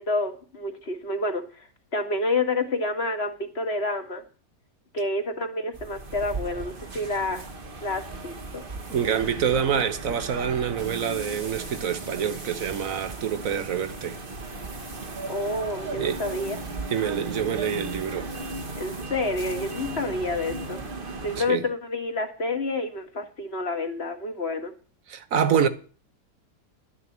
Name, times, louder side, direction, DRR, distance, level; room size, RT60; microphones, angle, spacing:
voice 1, 0.0-1.4 1.9-4.2 4.9-7.4 7.8-8.6 15.3-16.6 18.7-20.8 21.2-24.7, left 2 dB, 40° left, 2.0 m, -29 dB
sound 1, 5.7-21.4, right 2 dB, 35° right, 1.4 m, -36 dB
voice 2, 8.9-14.2 16.0-16.2 16.9-18.3 21.4-21.6 25.1-25.7, right 8 dB, 55° right, 1.4 m, -26 dB
12.5 x 7.0 x 7.4 m
omnidirectional pair, 1.8 m